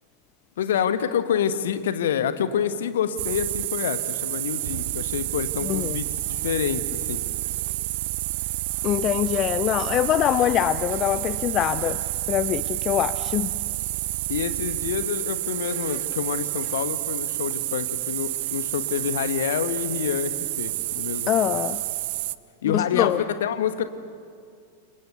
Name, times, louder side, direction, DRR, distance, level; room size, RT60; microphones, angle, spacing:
voice 1, 0.6-7.2 14.3-21.6 22.6-23.1 23.4-23.8, left 8 dB, 60° left, 11 dB, 1.5 m, -27 dB
sound 1, 3.2-22.4, right 18 dB, 50° right, 0.6 m, -29 dB
voice 2, 5.6-6.0 8.8-12.0 12.3-13.5 21.3-21.8 22.7-23.2, left 12 dB, 35° left, 15 dB, 0.6 m, -24 dB
28.5 x 23.5 x 7.0 m, 2.3 s
figure-of-eight pair, 90°, 0 cm